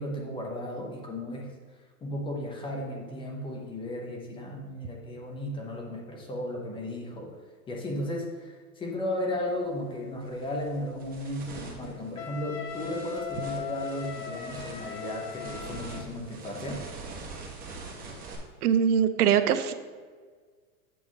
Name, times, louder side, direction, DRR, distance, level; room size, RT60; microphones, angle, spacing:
voice 1, 0.0-1.5 2.0-7.4 7.7-16.8, left 1 dB, 10° left, 0 dB, 0.7 m, -35 dB
sound 1, 9.5-9.7 10.1-18.4, right 3 dB, 20° right, 1.3 m, -44 dB
Wind instrument woodwind instrument, 12.2-16.1, left 10 dB, 40° left, 0.8 m, -39 dB
voice 2, 18.6-19.7, right 8 dB, 80° right, 10 dB, 0.8 m, -22 dB
8.5 x 3.6 x 6.1 m, 1.5 s
supercardioid pair, 145°, 45 cm